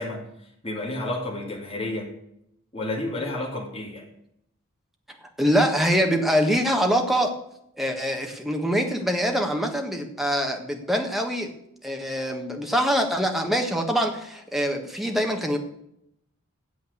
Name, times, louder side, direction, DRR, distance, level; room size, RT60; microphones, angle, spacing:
voice 1, 0.0-2.1 2.7-4.0, left 2 dB, 25° left, -2 dB, 2.3 m, -31 dB
voice 2, 5.4-7.3 7.8-11.5 11.8-15.6, equal, ahead, 3 dB, 1.4 m, -24 dB
8.5 x 7.8 x 8.0 m, 0.76 s
head